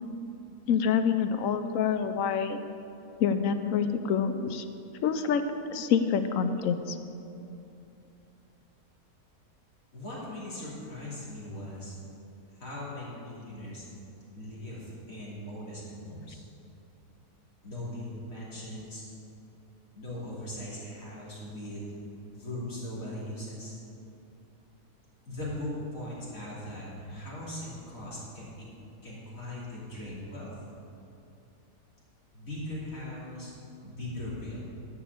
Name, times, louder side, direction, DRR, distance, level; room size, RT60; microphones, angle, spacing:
voice 1, 0.7-2.7 3.2-4.7 5.0-5.4 5.7-7.0, left 7 dB, 70° left, 9 dB, 0.8 m, -27 dB
voice 2, 9.9-11.9 12.5-13.8 14.3-16.4 17.6-19.0 19.9-21.8 22.3-23.7 25.3-28.5 29.0-30.5 32.3-33.5 33.8-34.6, left 1 dB, 55° left, -7 dB, 3.3 m, -39 dB
11.0 x 4.9 x 8.1 m, 2.7 s
omnidirectional pair, 1.8 m